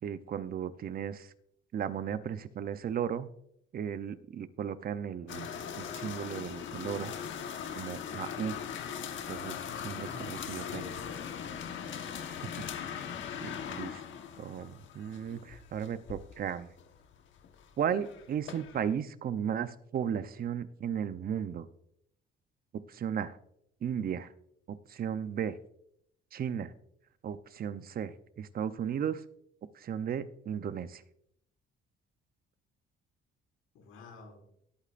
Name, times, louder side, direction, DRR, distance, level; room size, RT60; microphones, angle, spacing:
voice 1, 0.0-1.3 1.7-3.3 3.7-5.5 5.8-7.1 7.8-8.5 9.3-9.6 9.8-10.9 12.7-14.0 14.4-16.7 17.8-21.7 22.7-23.4 23.8-24.3 24.7-25.6 26.3-26.7 27.2-29.2 29.7-31.0, right 8 dB, 45° right, 12 dB, 0.7 m, -35 dB
sound 1, 5.3-18.9, left 8 dB, 65° left, 1.2 m, -40 dB
voice 2, 10.0-11.5 33.7-34.5, left 5 dB, 85° left, 1 dB, 4.7 m, -47 dB
19.5 x 8.4 x 2.5 m, 0.73 s
cardioid pair, 135°, 21 cm